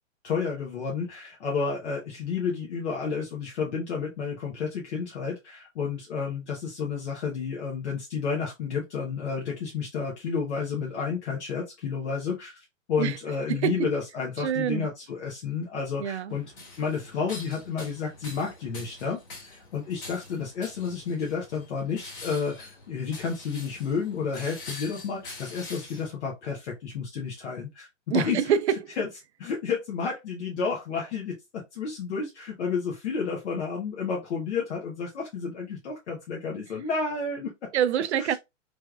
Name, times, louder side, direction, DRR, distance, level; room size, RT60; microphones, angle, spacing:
voice 1, 0.2-12.6 12.9-16.5 16.8-27.9 28.1-28.4 29.0-29.1 29.4-37.7, left 5 dB, 60° left, 1.1 m, -31 dB
voice 2, 13.5-13.9 14.4-14.9 16.0-16.4 28.1-29.0 37.7-38.3, right 9 dB, 60° right, 0.5 m, -26 dB
sound 1, 16.3-26.1, left 3 dB, 40° left, 1.9 m, -45 dB
3.3 x 3.3 x 2.3 m
hypercardioid pair, 155°, 38 cm